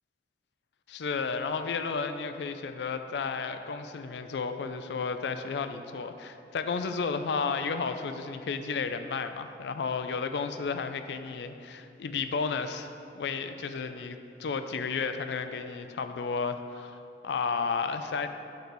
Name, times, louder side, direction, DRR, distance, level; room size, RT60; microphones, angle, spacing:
voice 1, 0.9-18.3, left 5 dB, 75° left, 8 dB, 0.4 m, -32 dB
6.9 x 4.0 x 4.5 m, 2.5 s
head